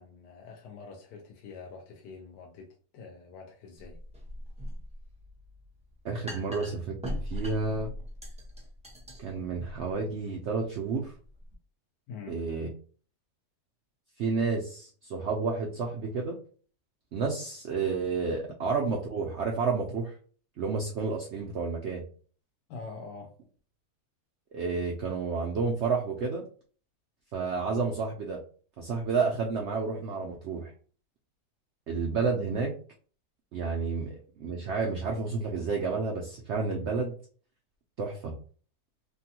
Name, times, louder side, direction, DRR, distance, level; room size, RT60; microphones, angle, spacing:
voice 1, 0.0-2.7 2.9-4.0 12.1-12.4 22.7-23.3, left 4 dB, 80° left, 1 dB, 1.2 m, -45 dB
sound 1, 3.8-11.5, equal, 5° right, 0.5 m, -41 dB
voice 2, 6.0-7.9 9.2-11.1 12.3-12.7 14.2-16.4 17.1-20.1 20.6-22.0 24.5-26.4 27.3-28.4 28.8-30.7 31.9-32.7 33.5-37.1 38.0-38.3, right 4 dB, 75° right, 0 dB, 0.6 m, -30 dB
3.3 x 2.2 x 2.8 m, 0.42 s
omnidirectional pair, 1.7 m